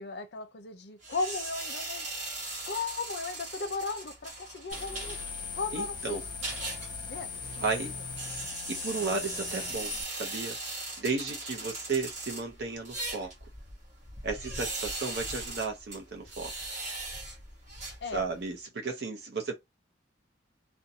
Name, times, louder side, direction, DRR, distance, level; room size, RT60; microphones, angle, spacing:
voice 1, 0.0-2.1 2.7-5.2 5.5-6.2 7.0-7.3 7.6-8.0 18.0-18.2, left 3 dB, 60° left, 0.5 m, -36 dB
sound 1, 1.0-18.5, right 2 dB, 40° right, 1.2 m, -40 dB
sound 2, 4.7-10.0, left 4 dB, 25° left, 0.9 m, -39 dB
voice 2, 5.7-6.2 7.6-7.9 8.7-10.6 11.0-13.3 14.2-16.5 18.1-19.6, right 4 dB, 60° right, 0.7 m, -34 dB
2.6 x 2.2 x 2.6 m
head